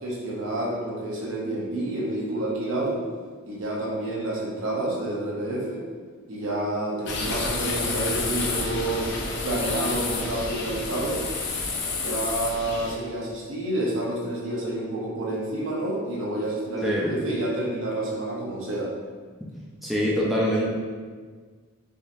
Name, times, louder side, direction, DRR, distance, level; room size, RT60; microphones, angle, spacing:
voice 1, 0.0-3.0 3.5-5.8 6.3-9.1 9.4-11.2 12.0-18.9, right 1 dB, 70° right, -4 dB, 0.8 m, -29 dB
sound 1, 7.1-12.9, left 3 dB, 60° left, 0.5 m, -30 dB
voice 2, 16.8-17.1 19.8-20.6, equal, ahead, -6 dB, 0.4 m, -24 dB
3.6 x 2.7 x 2.6 m, 1.5 s
head